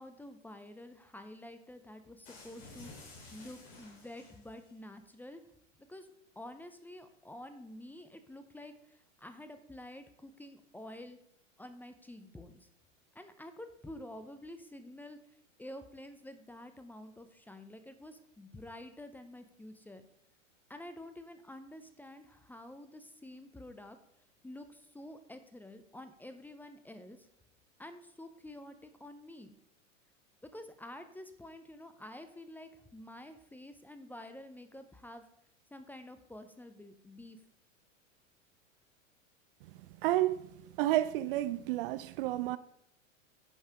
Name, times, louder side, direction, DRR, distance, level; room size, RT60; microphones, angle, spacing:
voice 1, 0.0-5.4 5.8-6.1 6.4-11.2 11.6-12.7 13.1-15.2 15.6-20.0 20.7-24.0 24.4-27.3 27.8-29.6 30.4-35.2 35.7-37.4, left 1 dB, 5° left, 0.6 m, -49 dB
sound 1, 2.2-4.7, left 2 dB, 40° left, 3.7 m, -53 dB
voice 2, 40.0-40.5 40.8-42.6, right 15 dB, 45° right, 0.5 m, -30 dB
10.0 x 5.6 x 5.0 m
hypercardioid pair, 95°, 39 cm